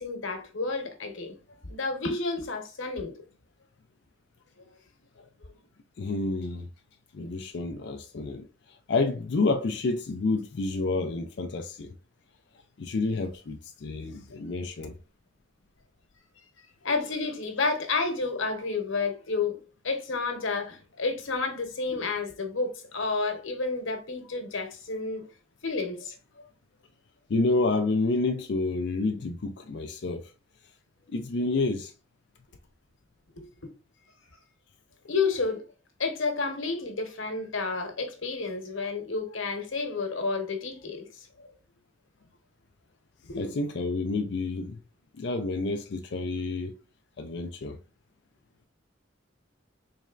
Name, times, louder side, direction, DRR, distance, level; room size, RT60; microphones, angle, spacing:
voice 1, 0.0-3.1 4.6-4.7 5.4-5.6 16.8-19.6 19.8-25.3 25.6-26.2 33.4-33.5 35.0-35.6 36.0-41.5 43.3-43.6, left 4 dB, 85° left, 1.0 m, -30 dB
voice 2, 6.0-6.7 7.1-11.9 12.8-15.0 27.3-30.3 31.1-31.9 43.4-44.8 45.2-46.7 47.2-47.8, left 3 dB, 55° left, 0.4 m, -29 dB
4.1 x 3.2 x 2.4 m
head